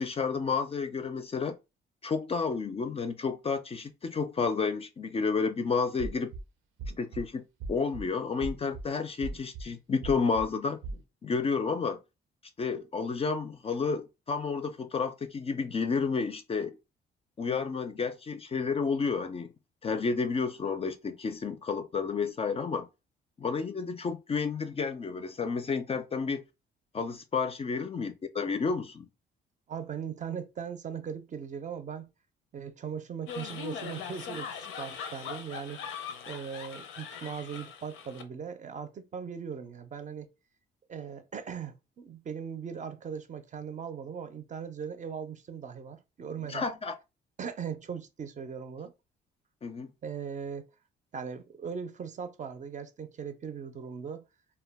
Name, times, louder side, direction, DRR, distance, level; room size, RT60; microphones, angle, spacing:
voice 1, 0.0-1.6 2.0-6.3 7.0-7.4 7.7-10.8 11.2-12.0 12.6-16.8 17.4-19.5 19.8-22.9 23.4-26.4 26.9-29.1 46.5-47.0 49.6-49.9, left 5 dB, 30° left, 0.3 m, -31 dB
sound 1, 6.0-6.4 6.8-7.2 7.6-8.0 8.4-8.8 9.2-9.6 10.0-10.4 10.8-11.0, right 3 dB, 85° right, 0.6 m, -38 dB
voice 2, 29.7-32.1 32.5-34.5 34.8-35.8 36.3-40.3 40.9-46.7 47.4-48.9 50.0-50.7 51.1-54.3, right 7 dB, 40° right, 0.5 m, -39 dB
sound 2, 33.3-38.2, left 7 dB, 85° left, 0.5 m, -40 dB
2.2 x 2.1 x 3.4 m
cardioid pair, 90°, 20 cm